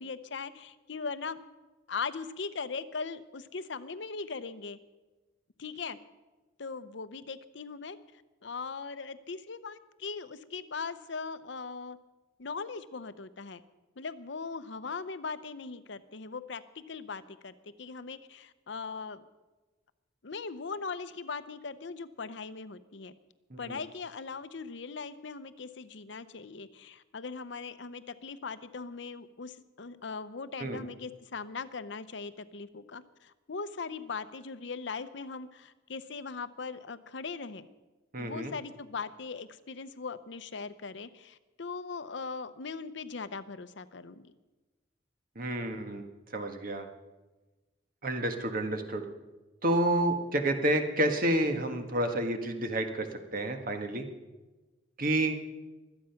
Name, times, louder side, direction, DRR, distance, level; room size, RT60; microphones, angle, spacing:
voice 1, 0.0-1.4 1.9-4.8 5.6-6.0 6.6-8.0 8.4-12.0 12.4-13.6 14.0-19.2 20.2-23.1 23.6-37.7 38.2-44.3, left 4 dB, 65° left, 13 dB, 0.7 m, -40 dB
voice 2, 38.1-38.5 45.3-46.1 46.3-46.8 48.0-49.0 49.6-54.1 55.0-55.4, right 1 dB, 50° right, 6 dB, 1.6 m, -29 dB
24.0 x 8.9 x 5.8 m, 1.2 s
head